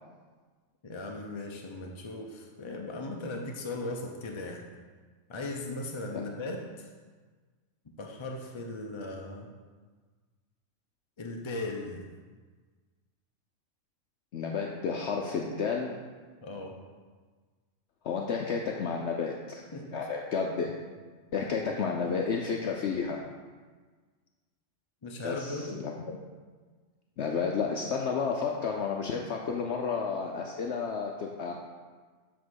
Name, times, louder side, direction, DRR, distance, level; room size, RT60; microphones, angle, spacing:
voice 1, 0.8-4.6 5.3-6.9 8.0-9.5 11.2-12.0 16.4-16.8 19.7-19.9 25.0-25.8, left 2 dB, 40° left, 1 dB, 0.4 m, -38 dB
voice 2, 14.3-15.9 18.0-19.6 19.9-20.7 21.3-23.2 25.2-26.2 27.2-31.5, left 5 dB, 65° left, 1 dB, 0.8 m, -31 dB
7.3 x 3.7 x 6.2 m, 1.5 s
omnidirectional pair, 1.4 m